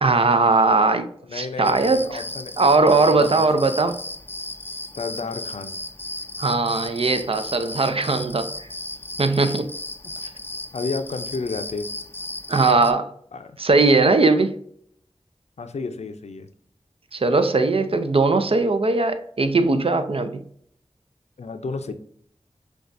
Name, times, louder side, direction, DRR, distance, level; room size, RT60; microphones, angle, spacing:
voice 1, 0.0-1.1 1.3-2.2 2.6-4.0 6.4-8.7 9.2-9.7 12.5-13.1 13.6-14.6 17.1-20.4, right 3 dB, 55° right, 0.5 m, -19 dB
voice 2, 1.3-2.5 3.1-3.7 4.9-5.7 10.0-10.1 10.7-11.9 13.3-13.5 15.6-16.5 21.4-21.9, left 4 dB, 75° left, 0.5 m, -31 dB
sound 1, 1.6-12.9, left 2 dB, 20° left, 0.4 m, -35 dB
6.4 x 2.4 x 2.5 m
cardioid pair, 40°, 11 cm